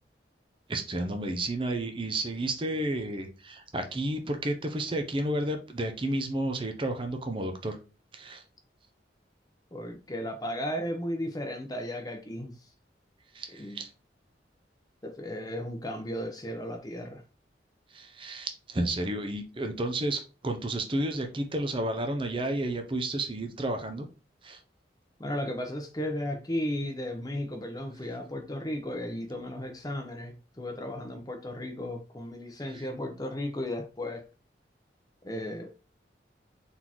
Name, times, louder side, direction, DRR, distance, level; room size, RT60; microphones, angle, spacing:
voice 1, 0.7-7.8 8.1-8.4 13.3-13.9 17.9-24.1 24.4-24.6 32.7-32.9, right 1 dB, 30° right, 0.6 m, -31 dB
voice 2, 9.7-12.5 13.6-13.8 15.0-17.2 25.2-34.3 35.2-35.7, left 1 dB, 20° left, 0.7 m, -35 dB
4.1 x 3.7 x 3.0 m
head